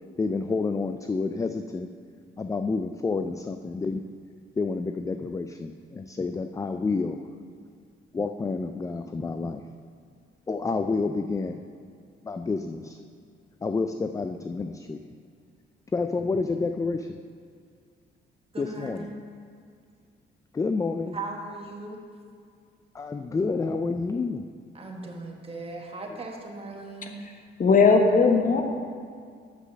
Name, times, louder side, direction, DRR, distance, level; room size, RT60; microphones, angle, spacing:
voice 1, 0.2-1.9 2.4-4.0 4.6-7.3 8.1-9.7 10.5-11.7 12.2-13.0 13.6-15.1 15.9-17.2 18.6-19.1 20.5-21.2 22.9-24.5 26.1-26.2, left 4 dB, 15° left, 7 dB, 0.3 m, -29 dB
voice 2, 18.5-19.1 21.1-22.0 24.7-27.2, right 3 dB, 30° right, 1 dB, 1.5 m, -38 dB
voice 3, 27.6-28.6, left 4 dB, 45° left, 4 dB, 1.1 m, -18 dB
7.5 x 6.6 x 6.5 m, 2.2 s
cardioid pair, 90°, 20 cm